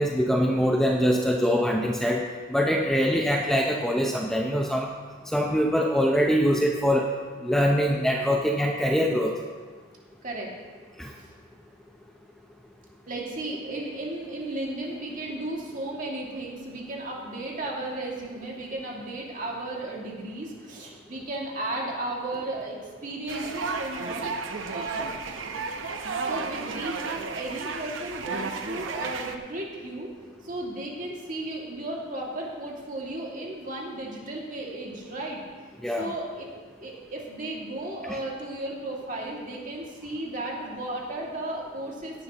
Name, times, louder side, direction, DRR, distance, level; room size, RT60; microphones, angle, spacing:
voice 1, 0.0-2.2 2.5-4.9 5.3-7.1 7.4-9.3 11.0-11.1 35.8-36.1 38.1-38.2, equal, ahead, 0 dB, 0.6 m, -23 dB
voice 2, 13.1-24.3 24.7-25.1 26.2-30.1 30.4-35.4 36.0-36.4 36.8-42.2, right 2 dB, 40° right, -2 dB, 2.1 m, -34 dB
sound 1, 23.3-29.4, right 4 dB, 70° right, 0.8 m, -33 dB
16.5 x 10.5 x 2.9 m, 1.5 s
head